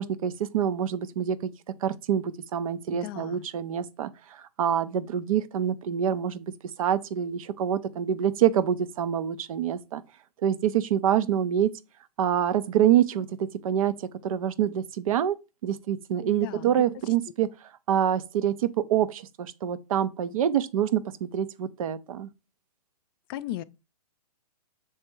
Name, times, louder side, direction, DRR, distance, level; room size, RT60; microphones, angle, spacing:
voice 1, 0.0-1.5 1.8-6.5 6.8-10.0 10.4-11.7 12.2-15.4 15.6-22.3, right 9 dB, 60° right, 0.7 m, -26 dB
voice 2, 2.9-3.4 16.3-16.7 23.3-23.6, left 14 dB, 35° left, 0.4 m, -36 dB
6.4 x 3.4 x 4.5 m
hypercardioid pair, 135°, 20 cm